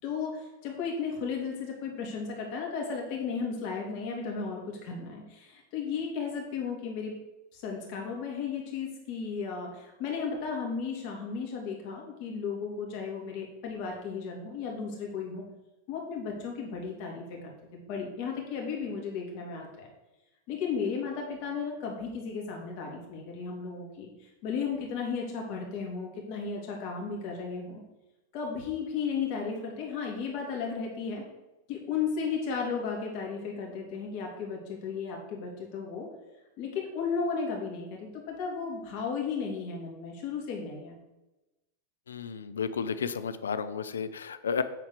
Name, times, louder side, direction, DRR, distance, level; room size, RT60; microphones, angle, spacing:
voice 1, 0.0-7.1 7.5-15.4 15.9-19.9 20.5-27.8 28.3-31.2 31.7-36.1 36.6-41.0, left 5 dB, 55° left, 0 dB, 3.0 m, -34 dB
voice 2, 42.1-44.6, left 6 dB, 85° left, 13 dB, 0.6 m, -32 dB
9.2 x 4.4 x 6.7 m, 1.0 s
hypercardioid pair, 100°, 0 cm